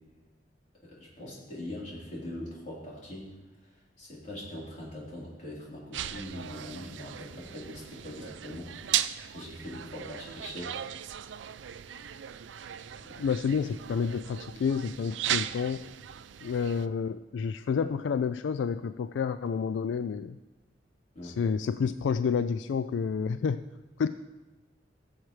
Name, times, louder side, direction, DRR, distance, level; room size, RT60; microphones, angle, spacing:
voice 1, 0.8-3.3 4.0-10.8 13.0-13.3 17.8-17.9 21.1-21.4, left 1 dB, 45° left, -6 dB, 3.8 m, -42 dB
sound 1, 5.9-16.9, right 11 dB, 85° right, 0.4 m, -37 dB
voice 2, 13.2-15.8 16.4-20.4 21.2-23.7 24.0-24.1, left 6 dB, 85° left, 12 dB, 0.3 m, -29 dB
19.5 x 7.3 x 3.2 m, 1.1 s
head